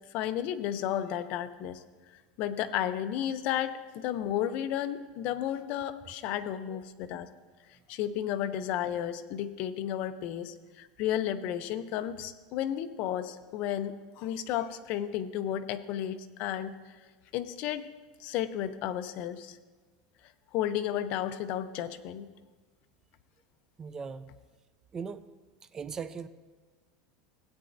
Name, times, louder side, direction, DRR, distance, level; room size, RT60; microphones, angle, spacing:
voice 1, 0.1-1.8 2.1-7.3 7.9-16.8 17.3-17.9 18.2-19.6 20.5-22.3, left 11 dB, 45° left, 10 dB, 0.5 m, -33 dB
voice 2, 23.8-24.3 24.9-25.3 25.7-26.3, right 6 dB, 20° right, 13 dB, 0.3 m, -38 dB
16.5 x 8.8 x 2.6 m, 1.3 s
supercardioid pair, 155°, 3 cm